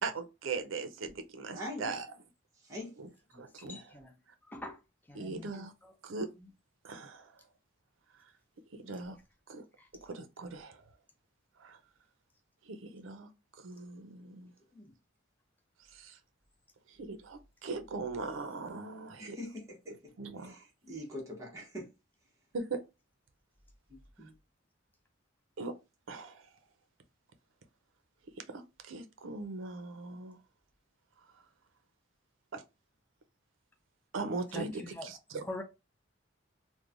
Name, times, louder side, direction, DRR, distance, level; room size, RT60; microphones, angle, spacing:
voice 1, 0.0-2.1 3.0-3.1 3.3-3.8 5.1-5.7 6.0-6.3 6.8-7.3 8.8-9.2 9.5-9.6 10.0-10.8 11.6-11.8 12.7-13.3 13.6-14.5 15.9-16.2 17.0-19.4 20.2-20.6 22.5-22.8 25.6-25.7 26.1-26.4 28.5-30.4 32.5-32.6 34.1-35.4, right 4 dB, 80° right, 0.5 m, -40 dB
voice 2, 1.5-1.9 2.6-3.0 14.7-14.9 19.2-20.1 20.4-21.9 23.9-24.3, left 1 dB, 15° right, 0.9 m, -43 dB
voice 3, 3.3-4.1 4.5-4.8 5.1-5.9 6.4-6.5 9.8-9.9 34.5-35.1 35.4-35.6, left 1 dB, 10° left, 0.4 m, -44 dB
3.1 x 2.1 x 2.4 m
head